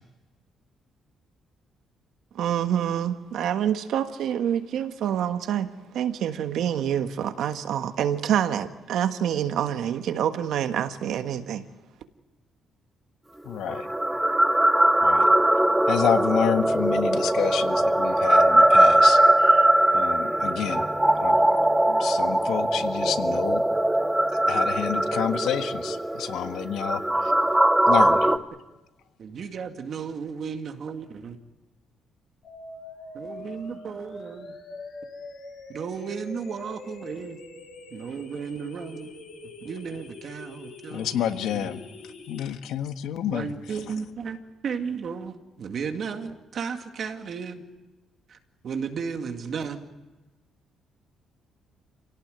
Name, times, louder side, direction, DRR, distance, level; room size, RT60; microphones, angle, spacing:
voice 1, 2.3-11.6, right 9 dB, 70° right, 1.5 m, -27 dB
voice 2, 13.4-13.9 15.0-15.2 15.9-19.2 19.5-19.6 19.9-20.8 21.2-21.4 21.9-23.7 24.5-27.0 27.9-28.2 40.9-41.8 42.3-43.5, left 10 dB, 85° left, 1.5 m, -29 dB
sound 1, 13.7-28.4, right 1 dB, 5° right, 0.7 m, -21 dB
voice 3, 29.2-31.4 33.1-34.6 35.7-37.4 37.9-39.2 39.6-41.2 41.5-41.7 43.3-44.4 44.6-47.6 48.3-48.4 48.6-49.9, right 6 dB, 45° right, 2.2 m, -34 dB
sound 2, 32.4-42.4, left 2 dB, 55° left, 7.3 m, -43 dB
27.5 x 17.5 x 9.3 m
cardioid pair, 150°, 0 cm